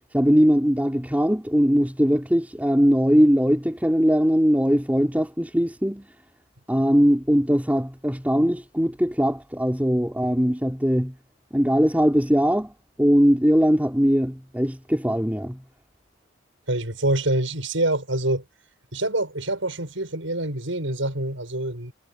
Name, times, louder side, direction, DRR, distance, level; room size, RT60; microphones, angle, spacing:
voice 1, 0.1-6.1 6.7-11.1 11.5-15.6, equal, 10° right, 4.9 m, -20 dB
voice 2, 16.7-18.4 18.9-21.9, right 1 dB, 85° right, 7.2 m, -26 dB
head